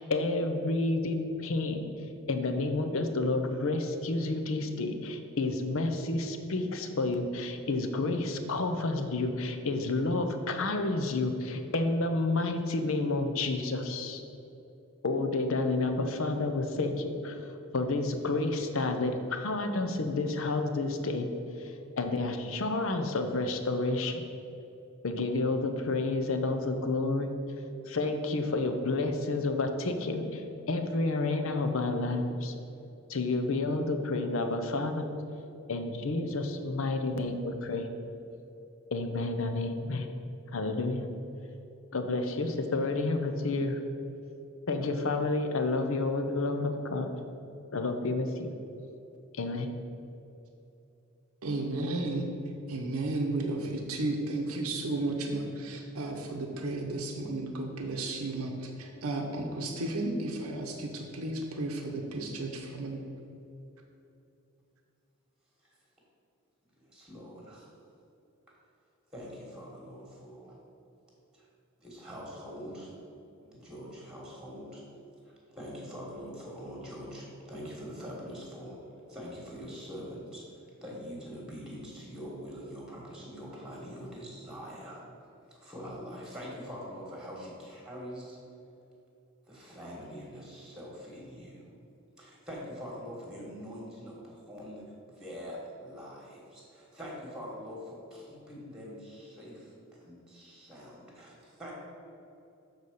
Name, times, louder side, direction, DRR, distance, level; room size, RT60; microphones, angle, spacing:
voice 1, 0.0-14.2 15.0-24.2 25.0-32.5 33.1-35.1 35.7-37.9 38.9-40.1 40.5-41.1 41.9-43.8 44.7-47.1 47.7-48.5 49.3-49.7, left 2 dB, 65° left, 6 dB, 0.7 m, -30 dB
voice 2, 51.4-52.3 52.7-63.0, right 2 dB, 85° right, 2 dB, 0.8 m, -33 dB
voice 3, 66.7-67.7 69.1-70.5 71.3-71.5 71.8-72.9 73.4-74.8 75.2-78.8 79.1-80.5 80.8-85.0 85.6-88.4 89.5-91.6 92.2-101.7, equal, 5° right, -4 dB, 1.6 m, -44 dB
7.1 x 4.1 x 6.5 m, 2.8 s
head